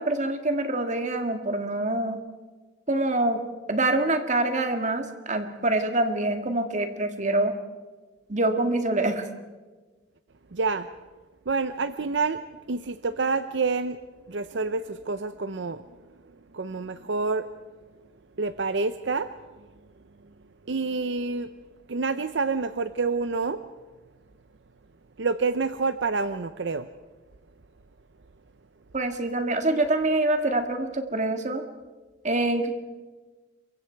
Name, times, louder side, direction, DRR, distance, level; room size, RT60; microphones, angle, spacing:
voice 1, 0.0-2.2 2.9-7.5 8.3-9.2 28.9-31.6 32.2-32.7, right 2 dB, 40° right, 6 dB, 2.1 m, -25 dB
voice 2, 10.5-10.9 11.5-12.4 12.7-14.0 14.3-15.8 16.5-17.5 18.4-19.3 20.7-21.5 21.9-23.6 25.2-26.9, right 4 dB, 70° right, 12 dB, 0.7 m, -27 dB
27.5 x 23.5 x 4.6 m, 1.3 s
head